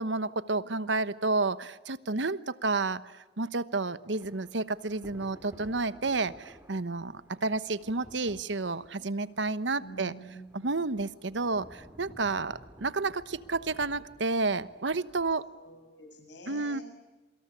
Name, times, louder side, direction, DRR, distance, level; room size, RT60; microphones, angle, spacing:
voice 1, 0.0-10.1 10.5-15.5 16.5-16.8, right 3 dB, 75° right, 15 dB, 1.1 m, -31 dB
Thunder / Rain, 4.1-15.4, equal, 10° right, 3.1 m, -55 dB
voice 2, 9.8-10.7 15.5-16.8, right 1 dB, 75° left, 4 dB, 7.6 m, -48 dB
27.0 x 25.0 x 8.5 m, 1.1 s
head